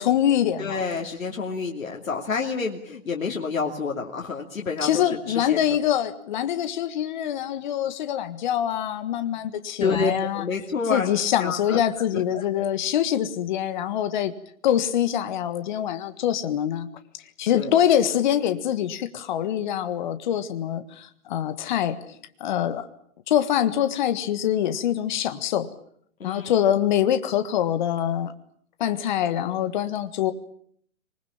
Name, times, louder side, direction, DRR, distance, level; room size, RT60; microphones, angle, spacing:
voice 1, 0.0-0.8 4.8-10.4 10.9-14.3 14.6-16.9 17.4-22.1 22.4-22.9 23.3-25.7 26.2-28.3 28.8-30.3, left 10 dB, 35° left, 10 dB, 1.6 m, -24 dB
voice 2, 0.6-5.6 9.8-11.1 11.4-11.8 12.1-12.6 17.5-17.7 26.2-26.5, left 4 dB, 75° left, 0 dB, 2.9 m, -28 dB
25.5 x 20.5 x 8.8 m, 0.64 s
hypercardioid pair, 150°, 41 cm